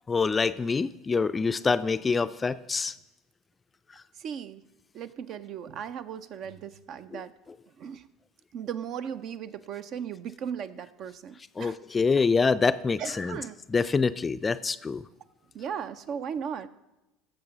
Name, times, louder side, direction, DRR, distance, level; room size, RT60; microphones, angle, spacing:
voice 1, 0.1-2.9 11.6-13.4 13.7-15.0, left 4 dB, 25° left, 14 dB, 0.4 m, -25 dB
voice 2, 4.2-4.6 4.9-7.3 7.8-8.1 8.5-11.8 13.0-13.6 15.5-16.7, right 8 dB, 50° right, 13 dB, 0.5 m, -37 dB
15.5 x 6.9 x 3.9 m, 0.97 s
hypercardioid pair, 70°, 0 cm